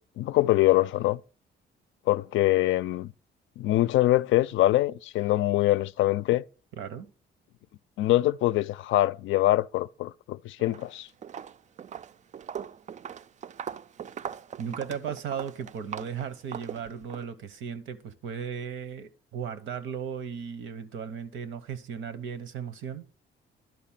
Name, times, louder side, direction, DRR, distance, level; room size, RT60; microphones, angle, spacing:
voice 1, 0.2-1.2 2.1-3.1 3.6-6.4 8.0-11.1, left 16 dB, 80° left, 0.4 m, -24 dB
voice 2, 6.8-7.1 14.6-23.0, right 7 dB, 80° right, 1.0 m, -36 dB
Walk footsteps, 10.6-10.9 11.2-17.3, right 8 dB, 40° right, 0.4 m, -40 dB
11.0 x 4.1 x 7.4 m
cardioid pair, 90°, 20 cm